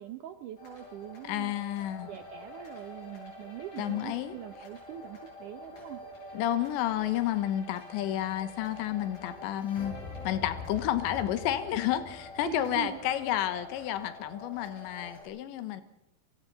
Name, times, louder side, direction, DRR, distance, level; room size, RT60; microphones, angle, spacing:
voice 1, 0.0-1.5 2.0-6.3 12.4-13.0, right 11 dB, 90° right, 9 dB, 1.8 m, -42 dB
sound 1, 0.6-15.2, left 3 dB, 50° left, 9.4 m, -46 dB
voice 2, 1.3-2.1 3.8-4.4 6.3-10.0 10.3-15.8, left 12 dB, 90° left, 10 dB, 3.5 m, -31 dB
Wind instrument woodwind instrument, 7.6-12.8, right 2 dB, 25° right, 3.0 m, -62 dB
30.0 x 23.5 x 4.1 m, 0.80 s
omnidirectional pair, 5.0 m